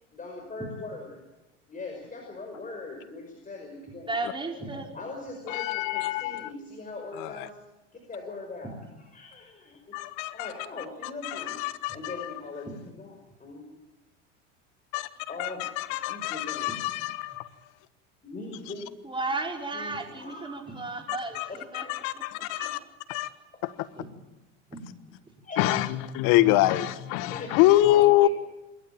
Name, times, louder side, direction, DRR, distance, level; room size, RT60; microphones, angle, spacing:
voice 1, 0.1-1.2 1.7-4.1 4.9-7.6 7.9-8.7 9.0-9.8 10.3-11.6 11.9-12.7 13.0-13.8 15.3-15.7 16.1-16.7 18.2-18.9 19.7-20.9 21.5-21.6 22.6-22.7 25.4-25.7 27.3-28.3, left 3 dB, 20° left, 1 dB, 5.5 m, -41 dB
voice 2, 4.1-5.0 8.6-8.8 12.6-12.8 16.7-16.8 19.0-21.8 22.6-22.7 24.0-24.1 24.7-24.9 27.9-28.3, right 3 dB, 15° right, 1 dB, 4.8 m, -34 dB
voice 3, 5.5-6.5 7.2-7.5 9.9-10.5 11.0-12.4 14.9-17.5 21.1-22.8 23.1-23.3 23.6-23.9 25.6-28.3, left 15 dB, 60° left, 14 dB, 1.4 m, -26 dB
26.5 x 13.0 x 9.1 m, 1.0 s
hypercardioid pair, 95°, 36 cm